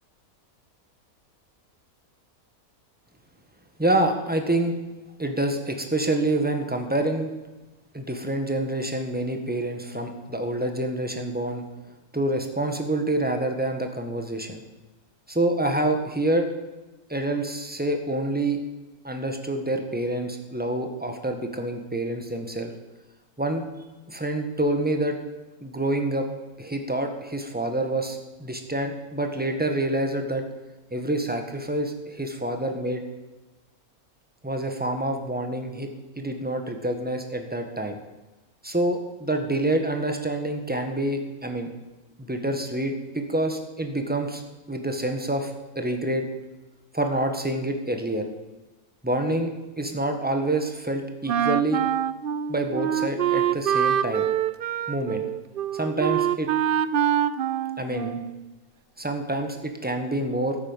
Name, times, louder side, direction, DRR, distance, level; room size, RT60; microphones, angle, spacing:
voice 1, 3.8-4.7 5.2-7.3 7.9-11.6 12.1-14.6 15.3-16.5 17.1-18.6 19.0-22.7 23.4-23.7 24.1-25.2 25.6-26.3 26.6-30.4 30.9-33.0 34.4-35.9 36.2-38.0 38.6-41.7 42.2-44.4 44.7-46.2 46.9-48.2 49.0-51.8 52.5-54.3 54.9-55.2 55.7-56.5 57.8-58.2 59.0-60.6, right 1 dB, 5° right, 5 dB, 1.5 m, -27 dB
Wind instrument woodwind instrument, 51.3-58.5, right 10 dB, 75° right, 0.5 m, -25 dB
15.5 x 8.8 x 7.4 m, 1.1 s
omnidirectional pair, 1.5 m